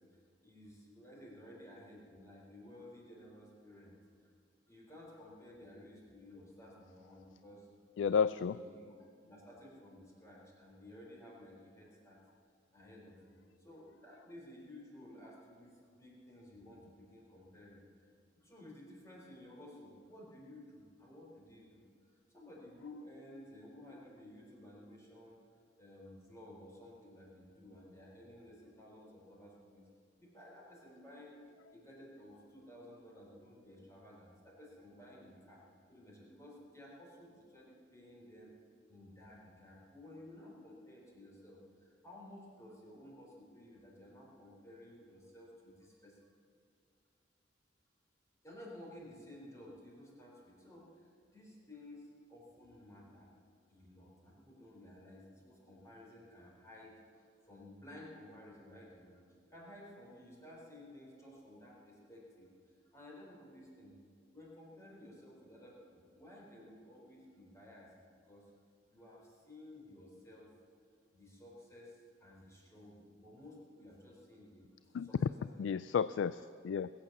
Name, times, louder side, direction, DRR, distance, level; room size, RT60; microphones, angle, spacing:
voice 1, 0.4-4.3 4.7-7.7 8.0-12.2 12.7-17.8 18.4-21.8 22.3-25.4 25.8-29.8 30.2-31.4 31.7-35.6 35.9-38.5 38.9-46.2 48.4-53.3 53.7-59.2 59.5-64.0 64.3-68.5 68.9-70.5 71.1-74.7 75.0-75.8, left 1 dB, 15° left, -3 dB, 4.1 m, -55 dB
voice 2, 8.0-8.6 74.9-75.1 75.6-76.9, left 6 dB, 75° left, 15 dB, 0.3 m, -32 dB
20.5 x 8.7 x 7.4 m, 2.2 s
head